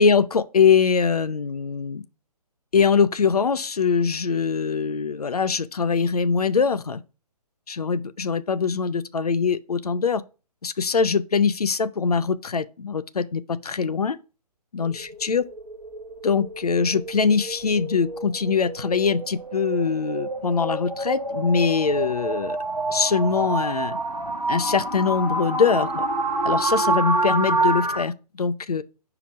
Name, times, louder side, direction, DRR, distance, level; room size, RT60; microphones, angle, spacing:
voice 1, 0.0-2.0 2.7-7.0 7.7-10.2 10.6-14.2 14.7-15.4 16.2-22.6 22.9-24.0 24.5-26.0 26.4-28.8, left 5 dB, 65° left, 0.5 m, -22 dB
sound 1, 14.8-28.0, right 2 dB, 85° right, 1.0 m, -28 dB
5.0 x 4.8 x 4.2 m
figure-of-eight pair, 135°, 21 cm